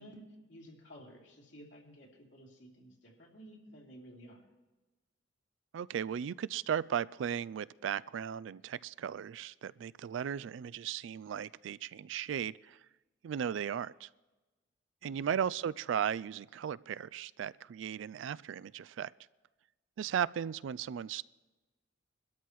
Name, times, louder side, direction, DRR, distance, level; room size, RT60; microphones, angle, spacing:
voice 1, 0.0-4.4, equal, 70° left, -2 dB, 3.1 m, -54 dB
voice 2, 5.7-12.8 13.2-14.1 15.0-19.1 20.0-21.2, right 8 dB, 80° right, 19 dB, 0.3 m, -36 dB
23.5 x 12.5 x 3.1 m, 1.2 s
head